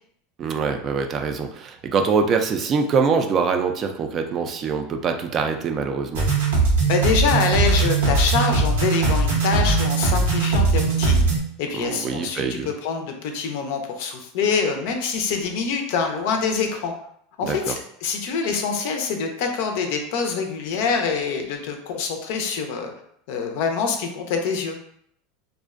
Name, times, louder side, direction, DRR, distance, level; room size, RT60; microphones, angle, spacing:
voice 1, 0.4-6.3 11.7-12.7 17.4-17.8, right 5 dB, 40° right, 6 dB, 0.3 m, -24 dB
sound 1, 6.1-11.4, right 3 dB, 90° right, 0.7 m, -20 dB
voice 2, 6.9-11.2 11.6-16.9 17.4-22.9 23.3-24.8, left 5 dB, 70° left, 4 dB, 0.4 m, -25 dB
2.5 x 2.1 x 2.3 m, 0.69 s
hypercardioid pair, 105°, 0 cm